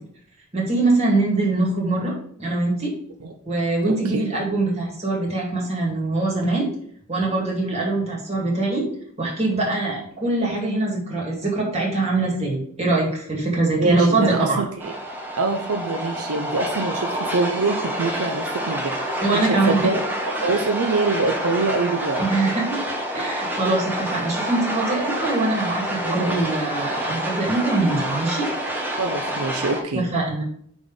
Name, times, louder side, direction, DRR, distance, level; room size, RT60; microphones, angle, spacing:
voice 1, 0.5-2.1 2.4-2.9 3.5-6.7 7.1-8.8 9.2-14.6 19.2-19.9 22.2-22.6 23.1-28.5 30.1-30.4, right 2 dB, 30° right, -3 dB, 2.1 m, -23 dB
voice 2, 3.8-4.3 13.8-14.9 15.4-22.2 26.1-26.3 28.9-30.1, right 3 dB, 80° right, 4 dB, 0.7 m, -25 dB
sound 1, 14.8-29.8, equal, 10° right, 1.0 m, -28 dB
6.1 x 3.6 x 5.0 m, 0.64 s
head